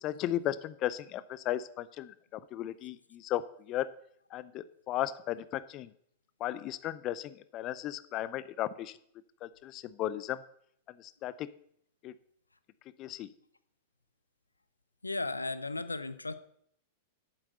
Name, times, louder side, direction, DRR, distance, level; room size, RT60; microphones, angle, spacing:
voice 1, 0.0-3.9 4.3-5.9 6.4-9.0 9.4-10.4 11.0-11.5 12.0-12.1 13.0-13.3, left 13 dB, 40° left, 16 dB, 0.6 m, -35 dB
voice 2, 15.0-16.3, left 3 dB, 90° left, 13 dB, 0.6 m, -35 dB
8.9 x 7.8 x 7.7 m, 0.69 s
figure-of-eight pair, 95°, 0 cm